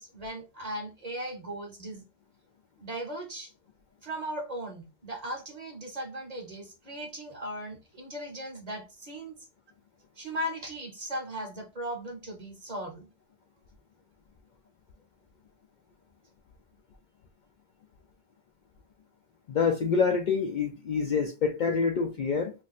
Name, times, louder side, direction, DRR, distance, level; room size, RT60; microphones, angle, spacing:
voice 1, 0.0-2.0 2.8-3.5 4.0-9.4 10.2-13.1, right 1 dB, 40° right, 0.8 m, -37 dB
voice 2, 19.5-22.5, left 5 dB, 60° left, 0.5 m, -26 dB
2.5 x 2.5 x 3.9 m
omnidirectional pair, 1.1 m